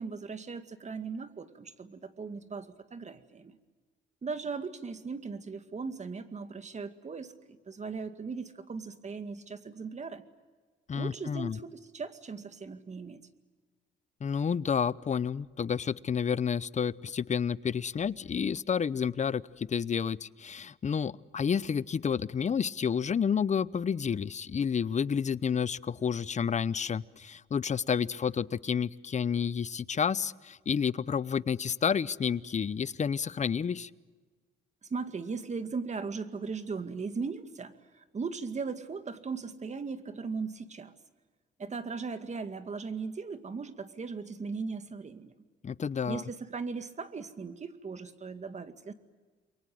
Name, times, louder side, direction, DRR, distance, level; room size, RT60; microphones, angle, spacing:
voice 1, 0.0-3.6 4.2-10.2 10.9-13.3 34.8-40.9 41.6-45.3 46.0-48.9, right 4 dB, 35° right, 9 dB, 2.1 m, -38 dB
voice 2, 10.9-11.6 14.2-33.9 45.6-46.2, left 7 dB, 35° left, 18 dB, 0.8 m, -30 dB
28.5 x 23.0 x 7.8 m, 1.4 s
cardioid pair, 90°, 20 cm